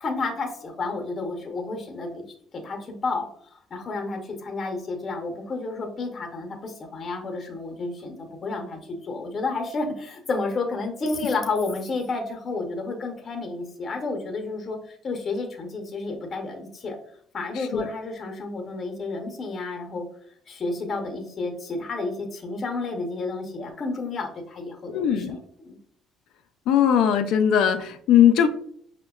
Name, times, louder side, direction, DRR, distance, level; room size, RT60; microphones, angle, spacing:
voice 1, 0.0-2.2 2.5-16.9 17.3-20.1 20.5-25.2 25.6-25.8, left 3 dB, 40° left, 3 dB, 0.7 m, -31 dB
voice 2, 17.6-17.9 24.9-25.4 26.7-28.5, left 9 dB, 75° left, 7 dB, 0.4 m, -19 dB
5.3 x 2.1 x 2.3 m, 0.63 s
cardioid pair, 90°, 0 cm